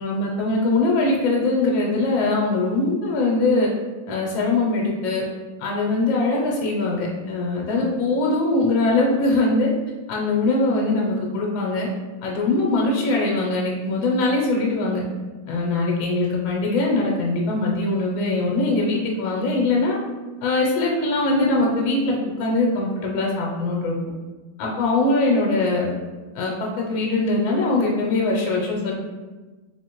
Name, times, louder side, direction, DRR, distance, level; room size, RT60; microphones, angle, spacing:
voice 1, 0.0-3.7 4.1-5.2 5.6-9.7 10.1-11.9 12.2-15.0 15.5-20.0 20.4-23.9 24.6-25.9 26.3-28.9, left 2 dB, 85° left, -2 dB, 1.4 m, -22 dB
3.7 x 3.1 x 2.9 m, 1.3 s
omnidirectional pair, 2.1 m